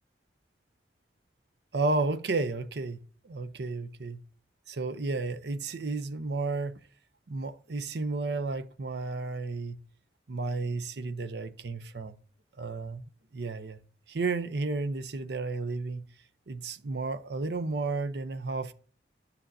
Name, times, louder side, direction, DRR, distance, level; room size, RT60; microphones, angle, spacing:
voice 1, 1.7-3.0 3.2-4.2 4.7-6.8 7.3-9.8 10.3-12.2 12.6-13.0 13.3-13.8 14.1-16.0 16.5-18.7, right 3 dB, 70° right, 0.6 m, -32 dB
10.0 x 6.7 x 2.6 m
head